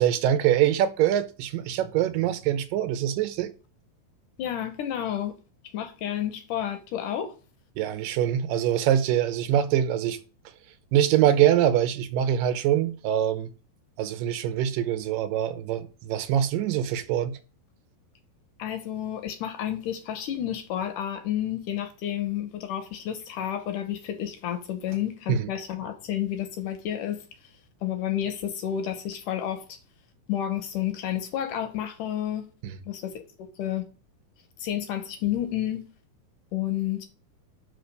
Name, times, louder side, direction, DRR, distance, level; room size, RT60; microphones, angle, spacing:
voice 1, 0.0-3.5 7.8-10.2 10.9-13.5 14.0-17.4 25.3-25.5 32.6-32.8, right 11 dB, 75° right, 2.4 m, -24 dB
voice 2, 4.4-5.3 5.7-7.3 18.6-27.3 27.8-29.8 30.3-32.5 32.9-33.8 34.6-35.8 36.5-37.1, left 11 dB, 75° left, 2.2 m, -30 dB
5.9 x 5.2 x 6.6 m
omnidirectional pair, 4.3 m